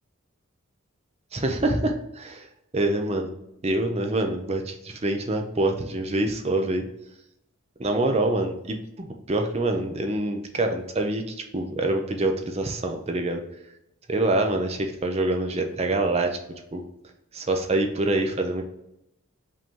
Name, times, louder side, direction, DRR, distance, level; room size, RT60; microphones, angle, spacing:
voice 1, 1.3-2.5 2.7-3.3 3.6-6.8 7.8-13.4 14.1-16.4 16.7-16.8 17.3-18.6, right 2 dB, 30° right, 4 dB, 0.5 m, -25 dB
5.2 x 2.8 x 3.6 m, 0.85 s
head